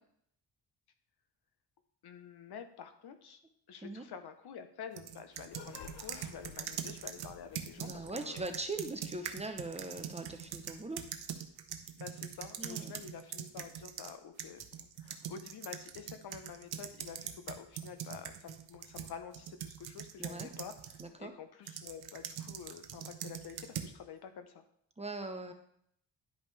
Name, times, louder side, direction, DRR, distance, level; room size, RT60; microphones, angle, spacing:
voice 1, 2.0-3.4 3.7-8.5 12.0-24.6, left 7 dB, 60° left, 8 dB, 0.9 m, -48 dB
sound 1, 5.0-14.1 14.4-21.1 21.7-23.9, right 9 dB, 60° right, 0.8 m, -43 dB
sound 2, 5.5-10.1, left 8 dB, 90° left, 0.8 m, -55 dB
voice 2, 7.8-11.0 12.6-12.9 20.2-20.5 21.0-21.3 25.0-25.5, right 2 dB, 15° right, 6 dB, 0.7 m, -41 dB
10.5 x 5.1 x 3.3 m, 0.69 s
cardioid pair, 105°, 43 cm